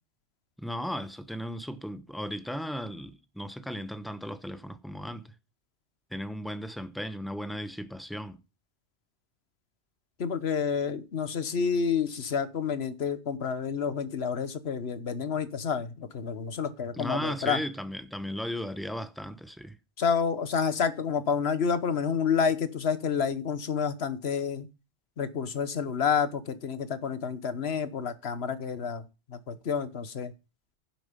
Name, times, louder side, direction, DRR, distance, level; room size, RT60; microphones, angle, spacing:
voice 1, 0.6-5.3 6.1-8.4 17.0-19.8, equal, ahead, 0.7 m, -36 dB
voice 2, 10.2-17.6 20.0-24.7 25.2-30.3, left 6 dB, 60° left, 1.3 m, -29 dB
10.5 x 7.6 x 5.2 m
omnidirectional pair, 1.2 m